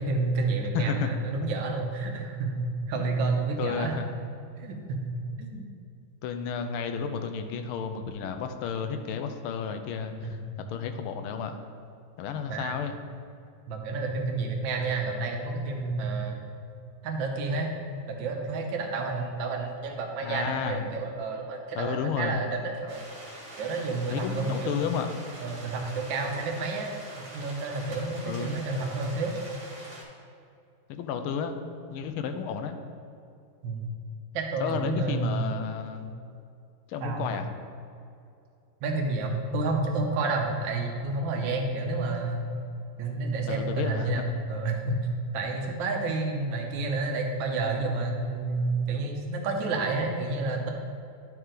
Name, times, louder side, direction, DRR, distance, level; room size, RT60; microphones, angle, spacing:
voice 1, 0.0-4.0 4.6-5.7 10.2-10.4 12.5-12.7 13.7-16.4 17.0-17.7 18.1-23.0 23.6-24.8 25.4-26.9 27.3-29.3 33.6-33.9 34.3-35.3 37.0-37.3 38.8-42.5 43.0-45.0 45.3-50.7, right 3 dB, 70° right, 2 dB, 1.5 m, -30 dB
voice 2, 0.7-1.1 3.6-4.1 6.2-10.4 10.7-11.6 12.2-13.0 20.2-21.0 21.7-22.4 24.1-25.1 28.2-28.5 30.9-31.6 31.9-32.7 34.6-36.1 36.9-37.5 43.5-44.1, left 6 dB, 85° left, 7 dB, 1.5 m, -32 dB
sound 1, 22.9-30.0, right 1 dB, 35° right, 1.7 m, -44 dB
11.0 x 4.5 x 3.8 m, 2.5 s
omnidirectional pair, 2.3 m